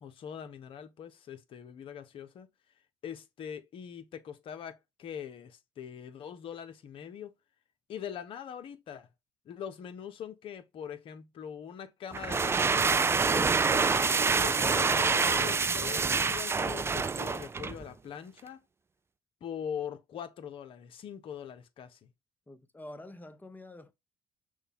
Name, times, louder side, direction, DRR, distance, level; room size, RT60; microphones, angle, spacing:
voice 1, 0.0-2.5 3.0-7.3 7.9-9.1 9.5-18.6 19.4-22.1, left 8 dB, 60° left, 0.8 m, -42 dB
sound 1, 12.1-17.8, right 4 dB, 25° right, 0.4 m, -27 dB
voice 2, 22.5-23.9, left 1 dB, 15° left, 0.8 m, -47 dB
6.3 x 2.2 x 3.5 m
hypercardioid pair, 50°, 10 cm